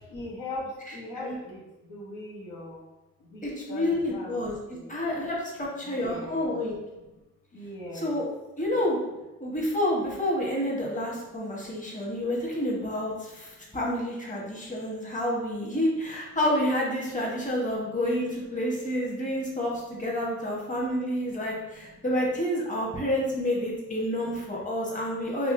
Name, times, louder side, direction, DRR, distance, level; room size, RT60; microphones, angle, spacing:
voice 1, 0.1-1.6 1.9-2.8 3.3-3.4 3.7-4.4 4.7-4.9 5.8-6.6 7.5-8.1, left 1 dB, 80° left, -5 dB, 1.1 m, -39 dB
voice 2, 3.4-6.7 7.9-8.2 8.6-9.0 9.4-25.5, left 1 dB, 25° left, -4 dB, 1.2 m, -29 dB
3.5 x 2.9 x 2.6 m, 1.0 s
cardioid pair, 60°, 32 cm